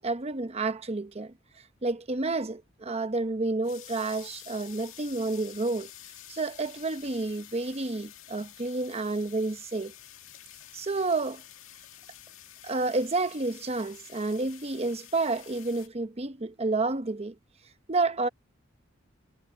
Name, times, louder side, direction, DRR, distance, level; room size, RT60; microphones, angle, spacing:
voice 1, 0.0-1.3 1.8-5.9 6.3-9.9 10.7-11.4 12.6-17.4 17.9-18.3, right 3 dB, 30° right, 0.8 m, -30 dB
sound 1, 3.6-15.9, left 12 dB, 85° left, 2.0 m, -49 dB
head